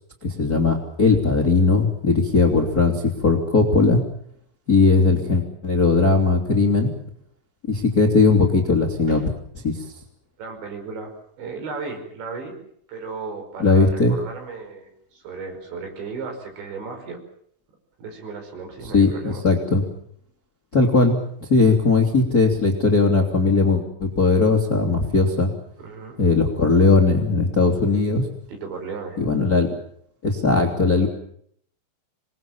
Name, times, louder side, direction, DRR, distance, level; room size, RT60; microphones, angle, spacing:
voice 1, 0.2-4.0 4.7-6.9 7.7-9.3 9.6-9.8 13.6-14.1 18.9-19.8 20.7-25.5 26.2-28.2 29.2-29.7 30.2-31.1, left 3 dB, 25° left, 3 dB, 2.3 m, -18 dB
voice 2, 10.4-11.1 11.4-12.6 12.9-17.2 18.0-19.4 25.8-26.2 28.5-29.2, right 4 dB, 60° right, 5 dB, 7.4 m, -35 dB
27.0 x 22.0 x 7.3 m, 0.66 s
omnidirectional pair, 5.9 m